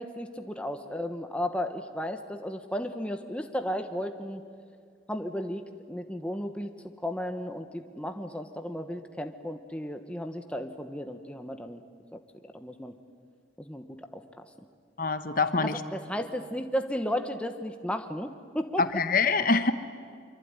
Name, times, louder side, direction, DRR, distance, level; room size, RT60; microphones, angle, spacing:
voice 1, 0.0-4.4 5.1-11.8 12.5-12.9 13.6-13.9 14.1-14.4 15.6-18.8, equal, 5° left, 6 dB, 1.2 m, -34 dB
voice 2, 15.0-15.8 18.8-19.7, left 4 dB, 50° left, 10 dB, 1.2 m, -25 dB
25.5 x 24.0 x 9.8 m, 2.2 s
head